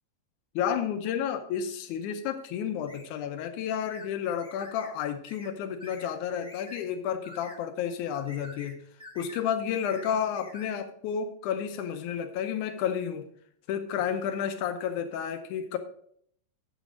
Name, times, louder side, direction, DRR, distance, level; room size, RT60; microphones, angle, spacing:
voice 1, 0.6-8.8 9.2-13.3 13.7-15.8, left 8 dB, 90° left, 7 dB, 2.2 m, -31 dB
sound 1, 2.9-3.1 3.9-4.1 4.4-4.9 5.3-5.5 5.8-6.1 6.4-6.8 7.2-7.6 8.1-8.7 9.0-9.4 9.7-10.7, left 1 dB, 5° right, 0.7 m, -47 dB
8.2 x 7.3 x 5.0 m, 0.65 s
omnidirectional pair, 3.4 m